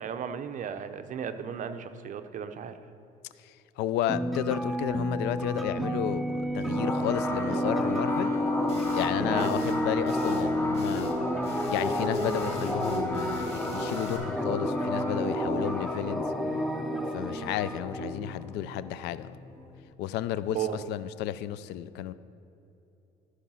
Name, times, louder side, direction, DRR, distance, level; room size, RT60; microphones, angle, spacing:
voice 1, 0.0-2.7 9.3-9.5 20.5-20.9, right 8 dB, 50° right, 9 dB, 0.7 m, -35 dB
voice 2, 3.4-8.3 8.9-11.1 11.7-16.2 17.1-19.3 20.0-20.6 20.9-22.1, left 12 dB, 85° left, 15 dB, 0.4 m, -32 dB
sound 1, 4.1-17.8, equal, ahead, 0.4 m, -31 dB
sound 2, 6.7-19.9, left 1 dB, 15° left, 1.2 m, -33 dB
sound 3, 8.7-9.1 9.4-9.8 10.1-10.5 10.7-11.2 11.4-14.2, left 2 dB, 35° left, 1.8 m, -47 dB
13.0 x 4.8 x 5.6 m, 2.9 s
cardioid pair, 110°, 17 cm